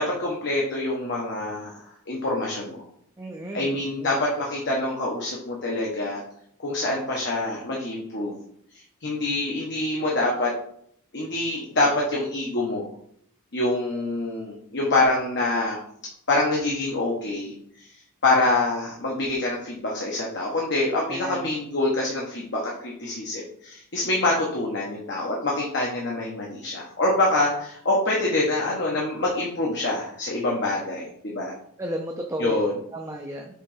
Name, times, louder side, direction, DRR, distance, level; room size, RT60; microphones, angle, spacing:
voice 1, 0.0-2.8 3.5-6.2 6.6-8.4 8.7-10.5 11.1-12.9 13.5-15.8 16.3-17.9 18.2-31.5 32.4-32.8, left 2 dB, 55° left, -3 dB, 1.2 m, -26 dB
voice 2, 3.2-3.7 21.1-21.4 31.8-32.6 32.9-33.5, right 1 dB, 15° right, 1 dB, 0.5 m, -32 dB
6.5 x 3.4 x 5.0 m, 0.67 s
head